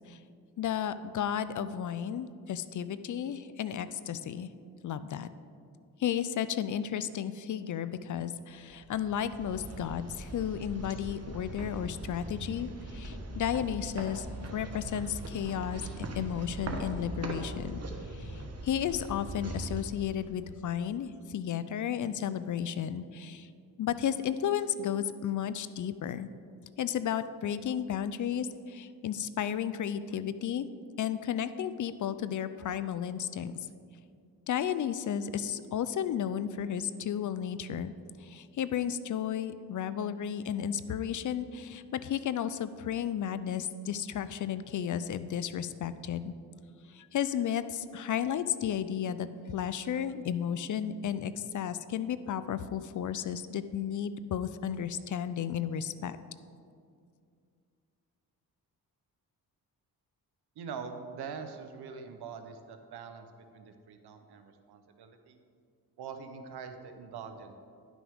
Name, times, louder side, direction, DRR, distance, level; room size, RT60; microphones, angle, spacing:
voice 1, 0.6-4.5 4.8-5.3 6.0-14.3 14.5-17.8 18.1-23.5 23.8-26.3 26.8-30.7 31.0-33.5 34.5-37.9 38.2-46.3 46.9-56.2, left 9 dB, 50° left, 13 dB, 0.5 m, -33 dB
sound 1, 8.7-20.8, right 1 dB, 40° right, 1.1 m, -40 dB
voice 2, 60.6-63.3 63.5-65.4 66.0-67.5, right 6 dB, 85° right, 7 dB, 0.8 m, -43 dB
11.0 x 6.1 x 3.5 m, 2.3 s
cardioid pair, 75°, 38 cm